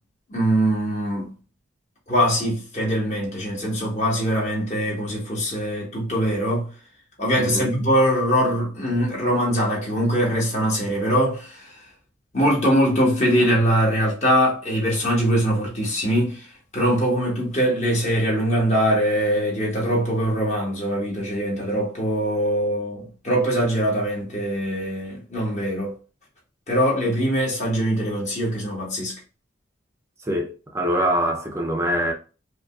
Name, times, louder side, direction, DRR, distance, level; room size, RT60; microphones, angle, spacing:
voice 1, 0.3-1.3 2.1-6.7 7.2-11.7 12.3-16.5 16.7-25.9 26.7-29.1, equal, 35° left, 1.6 m, -22 dB
voice 2, 7.4-7.7 30.2-32.1, equal, 15° right, 0.6 m, -24 dB
5.0 x 2.5 x 2.3 m
head